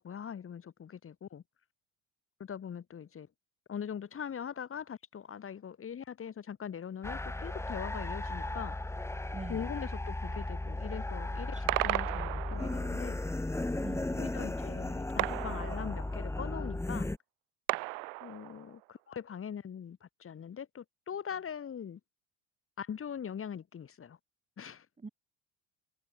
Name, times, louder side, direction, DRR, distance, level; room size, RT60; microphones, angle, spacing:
voice 1, 0.0-1.4 2.4-3.3 3.7-8.8 9.5-13.2 14.1-17.1 18.2-22.0 22.8-24.2 24.6-24.9, left 8 dB, 35° left, 3.5 m, -42 dB
sound 1, 7.0-17.2, left 2 dB, 5° left, 1.7 m, -36 dB
voice 2, 9.3-9.7 11.5-11.8 13.8-14.5 25.0-25.1, right 4 dB, 20° right, 5.8 m, -45 dB
sound 2, 11.7-13.1 15.2-16.4 17.7-18.8, right 40 dB or more, 75° right, 1.1 m, -35 dB
supercardioid pair, 80°, 36 cm